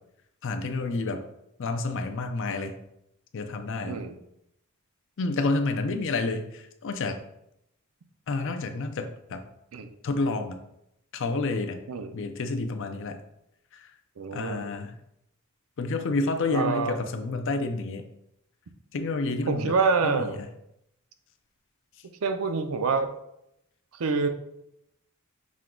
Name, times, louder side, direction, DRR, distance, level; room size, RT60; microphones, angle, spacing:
voice 1, 0.4-1.2 1.6-2.8 3.3-4.0 5.2-7.2 8.3-9.4 10.0-10.6 11.1-11.8 12.1-13.2 13.7-13.9 14.3-15.0 15.8-18.1 18.9-19.7 20.0-20.5, left 3 dB, 60° left, 7 dB, 0.5 m, -29 dB
voice 2, 3.9-4.2 9.7-9.9 11.9-12.1 14.2-14.6 16.5-17.0 19.5-20.4 22.2-23.2 24.0-24.3, right 4 dB, 80° right, 7 dB, 0.5 m, -26 dB
6.2 x 2.3 x 3.7 m, 0.80 s
head